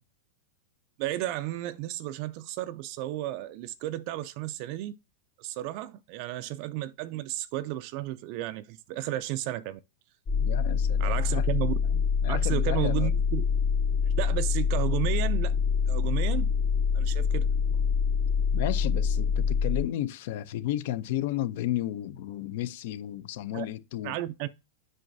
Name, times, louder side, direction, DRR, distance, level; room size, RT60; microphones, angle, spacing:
voice 1, 1.0-4.9 5.4-9.8 11.0-11.7 12.2-13.5 14.2-15.6 15.9-16.5 16.9-17.5 23.5-23.7 24.0-24.5, right 15 dB, 45° right, 0.4 m, -33 dB
sound 1, 10.3-19.8, left 6 dB, 30° left, 0.8 m, -25 dB
voice 2, 10.4-11.5 11.9-13.1 18.5-24.2, left 13 dB, 55° left, 0.5 m, -33 dB
7.6 x 5.3 x 2.6 m
supercardioid pair, 155°, 0 cm